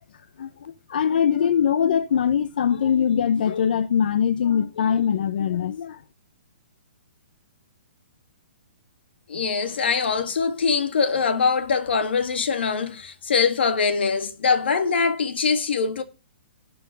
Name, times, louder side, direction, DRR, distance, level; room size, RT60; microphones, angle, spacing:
voice 1, 0.9-6.0, left 8 dB, 55° left, 0.7 m, -22 dB
voice 2, 9.3-16.0, left 5 dB, 70° left, 2.0 m, -23 dB
12.0 x 5.6 x 6.3 m
hypercardioid pair, 170°, 6 cm